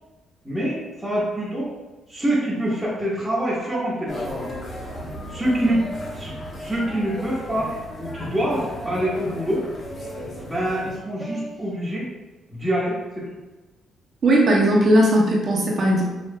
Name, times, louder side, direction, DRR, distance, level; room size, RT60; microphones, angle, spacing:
voice 1, 0.4-1.7 2.1-4.5 5.3-5.8 6.1-6.3 6.6-9.7 10.4-12.1 12.5-13.2, right 1 dB, 10° right, -10 dB, 1.1 m, -25 dB
sound 1, 4.1-11.0, equal, 45° left, 1.1 m, -35 dB
sound 2, 4.1-4.7 5.6-6.2 7.1-7.6 8.5-9.1 10.0-10.4 11.2-11.5, left 1 dB, 5° left, 0.7 m, -38 dB
voice 2, 14.2-16.0, right 1 dB, 50° right, -3 dB, 1.1 m, -17 dB
5.2 x 3.1 x 2.2 m, 1.2 s
cardioid pair, 90°, 0 cm